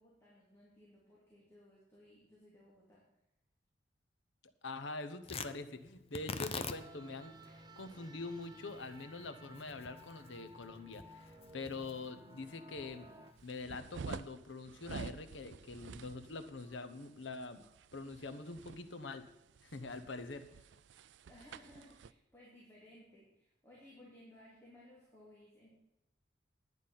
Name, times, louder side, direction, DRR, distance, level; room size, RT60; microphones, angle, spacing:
voice 1, 0.0-3.0 21.3-25.7, left 1 dB, 15° left, -7 dB, 3.1 m, -60 dB
voice 2, 4.6-17.6 17.9-19.2 19.6-20.5, left 3 dB, 85° left, 11 dB, 1.0 m, -45 dB
Tearing, 5.2-13.6, left 4 dB, 35° left, 0.6 m, -47 dB
sound 1, 6.4-13.3, right 1 dB, 25° right, 1.0 m, -56 dB
sound 2, 13.4-22.1, right 5 dB, 75° right, 0.4 m, -50 dB
11.0 x 9.5 x 5.7 m, 0.90 s
head